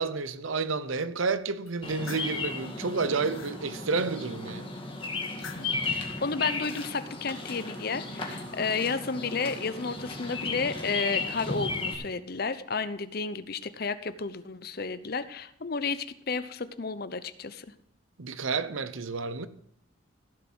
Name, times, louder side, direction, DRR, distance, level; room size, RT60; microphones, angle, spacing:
voice 1, 0.0-4.7 18.2-19.5, right 4 dB, 80° right, 0.8 m, -30 dB
sound 1, 1.7-2.4 2.9-3.6 5.2-5.9 6.4-6.9, left 5 dB, 80° left, 1.3 m, -46 dB
Bird vocalization bird call bird song, 1.8-11.9, left 3 dB, 25° left, 2.0 m, -35 dB
voice 2, 5.9-17.7, left 4 dB, 50° left, 0.7 m, -32 dB
15.5 x 7.2 x 6.2 m
head